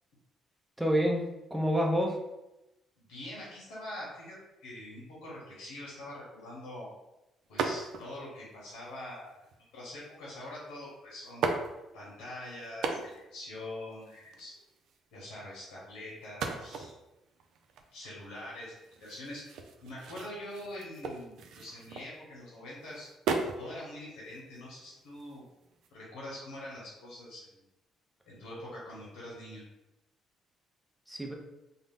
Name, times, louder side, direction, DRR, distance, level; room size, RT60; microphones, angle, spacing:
voice 1, 0.8-2.2 31.1-31.3, equal, 5° right, 1 dB, 0.6 m, -28 dB
voice 2, 3.0-6.9 7.5-9.5 9.7-11.5 11.9-14.5 15.1-16.9 17.9-19.4 19.8-23.1 23.5-25.4 25.9-27.6 28.3-29.6, left 1 dB, 90° left, -6 dB, 1.0 m, -44 dB
sound 1, 7.6-8.2 9.0-9.6 10.6-10.7 11.3-12.2 12.6-13.4 13.7-13.8 13.9-15.0 16.2-22.4 22.8-23.7 24.1-25.9, right 4 dB, 75° right, 0.3 m, -37 dB
2.5 x 2.0 x 3.5 m, 0.95 s
supercardioid pair, 80°, 0 cm